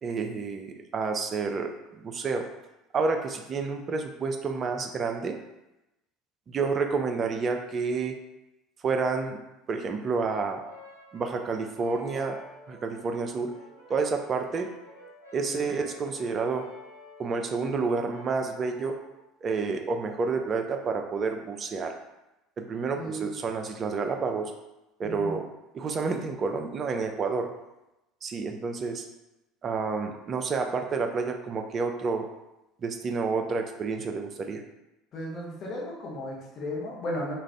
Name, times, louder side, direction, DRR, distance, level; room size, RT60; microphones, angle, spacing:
voice 1, 0.0-1.7 2.0-2.5 2.9-5.4 6.5-8.2 8.8-9.4 9.7-10.6 11.1-12.4 12.7-13.5 13.9-14.7 15.3-16.6 17.2-19.0 19.4-21.9 22.6-24.5 25.0-25.5 25.7-27.5 28.2-29.0 29.6-32.3 32.8-34.6, right 4 dB, 35° right, 4 dB, 0.4 m, -29 dB
Brass instrument, 10.6-19.2, left 1 dB, 85° left, 0.7 m, -50 dB
voice 2, 15.5-15.8 22.9-23.4 25.0-25.4 35.1-37.3, equal, 40° left, -3 dB, 0.9 m, -35 dB
2.4 x 2.3 x 3.3 m, 0.95 s
figure-of-eight pair, 65°, 0 cm